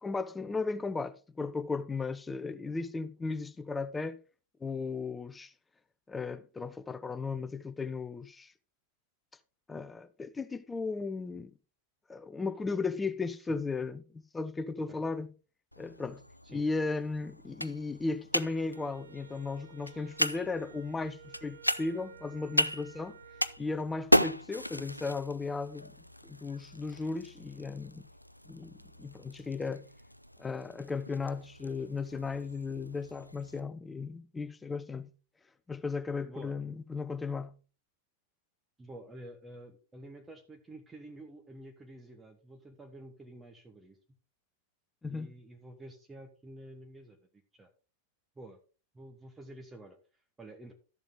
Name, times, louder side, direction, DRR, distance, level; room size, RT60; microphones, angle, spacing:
voice 1, 0.0-4.2 4.6-5.5 6.1-8.5 9.7-11.5 12.1-15.3 15.8-16.2 16.5-23.2 23.6-25.9 26.2-28.1 28.5-28.7 29.0-29.8 30.4-35.1 35.7-37.5 45.0-45.3, left 4 dB, 10° left, 0.7 m, -36 dB
sound 1, 15.7-33.6, equal, 90° left, 0.4 m, -36 dB
Wind instrument woodwind instrument, 18.7-23.6, right 10 dB, 60° right, 0.8 m, -54 dB
voice 2, 36.2-36.6 38.8-44.0 45.1-47.2 47.5-47.7 48.3-48.6 48.9-50.7, right 1 dB, 10° right, 1.4 m, -49 dB
12.5 x 7.2 x 3.8 m
figure-of-eight pair, 95°, 0 cm